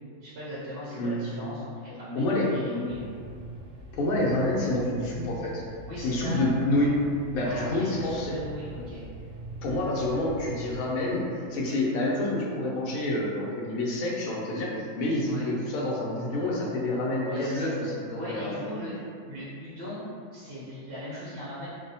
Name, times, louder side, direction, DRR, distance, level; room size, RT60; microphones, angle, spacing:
voice 1, 0.2-3.0 5.8-6.5 7.4-9.0 15.2-15.5 17.2-17.9 18.1-18.9 19.3-20.0 20.3-21.7, left 1 dB, 65° right, -9 dB, 0.7 m, -38 dB
voice 2, 0.9-1.5 2.1-2.5 3.9-5.6 6.0-7.0 7.3-8.3 9.6-18.6, left 1 dB, 70° left, -4 dB, 0.9 m, -28 dB
sound 1, 2.9-10.8, right 1 dB, 90° right, 1.2 m, -43 dB
2.6 x 2.0 x 2.7 m, 2.3 s
omnidirectional pair, 1.6 m